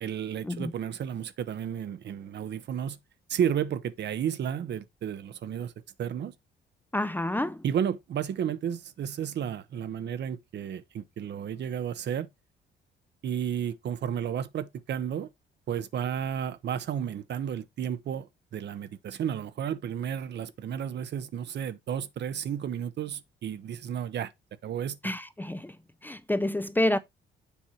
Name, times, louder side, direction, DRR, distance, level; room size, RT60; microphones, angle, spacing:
voice 1, 0.0-3.0 3.3-5.7 6.0-6.3 7.6-12.3 13.2-15.3 15.7-24.3 24.6-25.0, right 9 dB, 60° right, 0.8 m, -32 dB
voice 2, 6.9-7.6 25.0-25.8 26.0-27.0, left 1 dB, 10° left, 0.5 m, -28 dB
7.2 x 4.4 x 4.4 m
cardioid pair, 90°, 20 cm